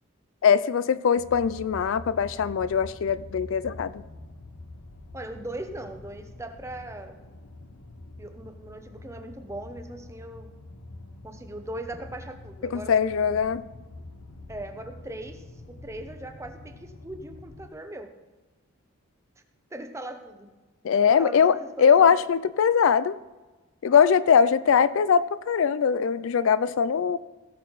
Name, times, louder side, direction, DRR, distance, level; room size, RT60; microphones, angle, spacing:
voice 1, 0.4-4.0 12.6-13.6 20.8-23.2 23.8-27.2, left 7 dB, 65° left, 16 dB, 0.3 m, -21 dB
sound 1, 1.2-17.7, left 2 dB, 80° left, 1.0 m, -45 dB
voice 2, 5.1-7.2 8.2-10.5 11.2-12.9 14.5-18.1 19.7-20.5 21.0-22.1, right 1 dB, 15° right, 6 dB, 0.8 m, -39 dB
17.0 x 6.4 x 4.0 m, 1.2 s
head